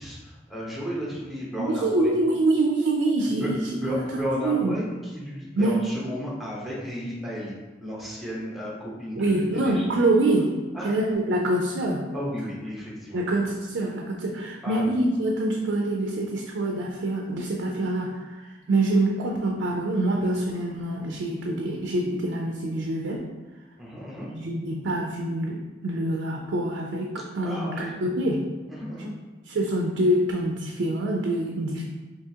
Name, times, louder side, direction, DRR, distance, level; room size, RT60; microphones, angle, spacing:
voice 1, 0.0-2.1 3.4-7.5 7.8-9.8 10.7-10.9 12.1-13.2 14.6-14.9 23.8-24.3 27.4-27.9 28.7-29.1, equal, ahead, -6 dB, 0.8 m, -33 dB
voice 2, 1.6-4.0 4.3-4.7 5.6-5.8 9.1-12.0 13.1-23.2 24.3-28.4 29.5-31.8, right 1 dB, 75° right, 0 dB, 0.4 m, -25 dB
3.5 x 2.8 x 2.7 m, 1.2 s
head